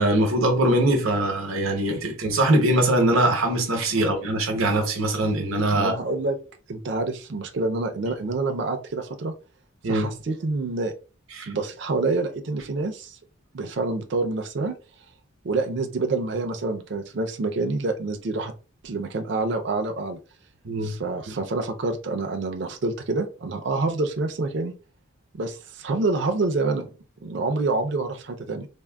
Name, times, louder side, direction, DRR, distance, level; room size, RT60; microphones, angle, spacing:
voice 1, 0.0-5.9 9.8-10.1 11.3-11.5 20.6-21.0 21.3-21.4, right 1 dB, 80° right, 0.8 m, -22 dB
voice 2, 5.7-6.4 6.7-9.3 9.9-10.9 11.5-13.2 13.5-14.8 15.4-18.5 18.8-20.2 20.8-24.7 25.3-26.9 27.2-28.7, right 3 dB, 55° right, 0.4 m, -27 dB
3.4 x 2.0 x 2.2 m
head